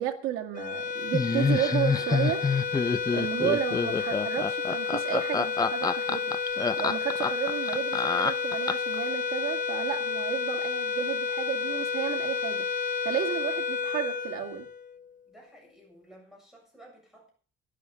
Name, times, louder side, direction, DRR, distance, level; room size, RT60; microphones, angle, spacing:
voice 1, 0.0-2.4 3.1-6.3 6.8-12.7 13.0-14.7, right 11 dB, 90° right, 2.1 m, -32 dB
sound 1, 0.5-15.1, left 5 dB, 40° left, 1.0 m, -31 dB
Laughter, 1.1-9.0, left 5 dB, 15° left, 0.6 m, -27 dB
voice 2, 15.3-17.3, right 1 dB, ahead, 7.5 m, -54 dB
12.5 x 11.5 x 6.5 m
cardioid pair, 145°, 21 cm